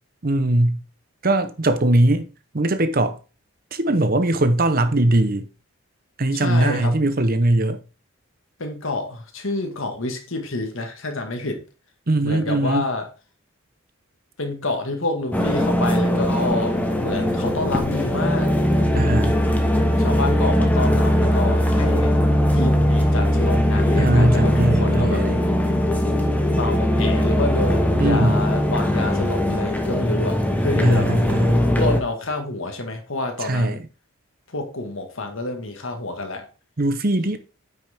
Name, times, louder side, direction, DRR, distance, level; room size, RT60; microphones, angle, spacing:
voice 1, 0.2-0.8 1.2-2.3 2.5-3.2 3.7-5.5 6.2-7.8 12.1-12.9 18.9-19.4 24.0-25.4 28.0-28.4 30.8-31.6 33.4-33.8 36.8-37.4, right 1 dB, 45° right, 0.9 m, -20 dB
voice 2, 6.3-7.2 8.6-11.6 12.2-13.1 14.4-18.5 20.0-22.2 22.5-25.2 26.5-31.1 31.8-33.8 34.5-36.5, left 2 dB, 70° left, 1.8 m, -28 dB
sound 1, 15.3-32.0, equal, 5° left, 1.0 m, -20 dB
9.0 x 6.1 x 3.6 m
head